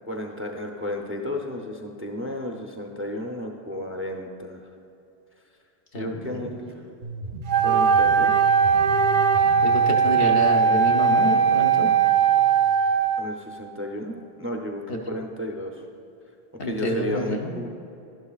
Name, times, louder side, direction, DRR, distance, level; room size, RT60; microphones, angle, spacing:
voice 1, 0.1-4.6 5.9-6.8 7.6-8.4 13.2-15.8 16.6-17.7, left 1 dB, 15° right, 1 dB, 0.5 m, -33 dB
voice 2, 5.9-6.5 9.6-11.9 14.9-15.0 16.6-17.5, left 1 dB, 65° left, 2 dB, 1.1 m, -28 dB
sound 1, 7.0-13.0, right 5 dB, 85° right, 1.2 m, -37 dB
Wind instrument woodwind instrument, 7.5-13.4, right 6 dB, 60° right, 0.6 m, -19 dB
11.5 x 11.0 x 2.4 m, 2.8 s
omnidirectional pair, 1.0 m